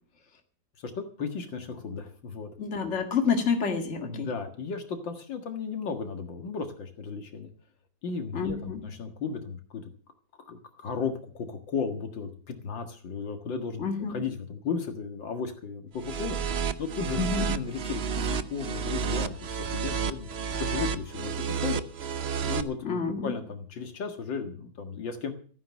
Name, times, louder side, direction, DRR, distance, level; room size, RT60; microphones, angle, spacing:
voice 1, 0.8-2.5 4.0-7.5 8.0-9.8 10.4-13.8 14.1-20.3 20.6-21.8 22.5-25.3, left 5 dB, 80° left, 6 dB, 2.5 m, -35 dB
voice 2, 2.6-4.3 8.3-8.9 13.8-14.2 17.2-17.6 22.8-23.3, left 5 dB, 35° left, 5 dB, 2.3 m, -28 dB
sound 1, 16.0-22.6, right 6 dB, 50° right, 0.7 m, -31 dB
14.5 x 9.6 x 7.2 m, 0.42 s
omnidirectional pair, 2.0 m